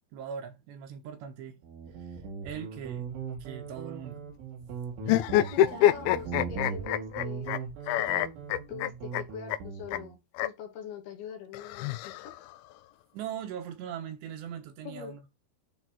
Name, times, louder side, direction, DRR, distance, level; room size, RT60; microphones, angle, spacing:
voice 1, 0.1-1.6 2.0-3.1 3.4-4.2 13.1-15.3, right 8 dB, 75° right, 3.3 m, -40 dB
Guitar, 1.6-10.1, right 6 dB, 90° right, 5.8 m, -39 dB
sound 1, 5.0-7.6 7.9-9.2 9.5-9.6 9.9-10.0 10.3-10.5 11.5-12.5, left 13 dB, 80° left, 2.8 m, -26 dB
voice 2, 5.0-7.5 8.0-8.3 8.7-12.3 14.8-15.2, left 7 dB, 65° left, 3.0 m, -43 dB
10.5 x 4.1 x 4.1 m
omnidirectional pair, 5.3 m